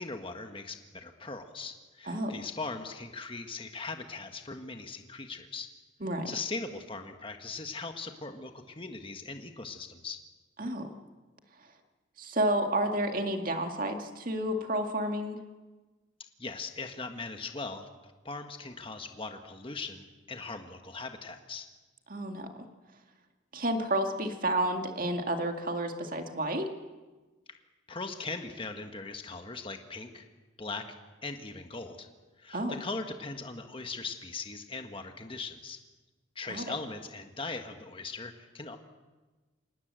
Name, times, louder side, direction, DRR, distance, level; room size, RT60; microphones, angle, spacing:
voice 1, 0.0-5.7 6.2-10.2 16.4-21.7 27.9-30.3 30.6-30.9 31.2-32.1 32.4-35.8 36.3-38.8, left 3 dB, 25° left, 6 dB, 1.5 m, -40 dB
voice 2, 6.0-6.3 10.6-10.9 12.2-15.4 22.1-22.5 23.5-26.7 32.5-32.7 36.5-36.7, right 1 dB, 45° right, 5 dB, 2.1 m, -30 dB
26.5 x 18.5 x 7.7 m, 1.2 s
head